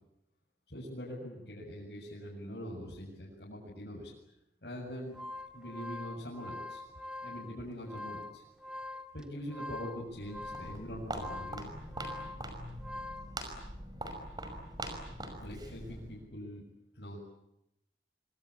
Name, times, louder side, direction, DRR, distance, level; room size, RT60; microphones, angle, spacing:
voice 1, 0.7-4.1 4.6-5.2 5.5-6.8 7.2-8.4 9.1-11.7 15.4-16.6 16.9-17.2, equal, 70° left, -5 dB, 7.8 m, -43 dB
sound 1, 4.9-13.3, left 2 dB, 5° right, 1.8 m, -44 dB
Walk footsteps, 10.1-16.2, right 1 dB, 25° right, 5.5 m, -43 dB
27.0 x 25.0 x 8.6 m, 0.82 s
head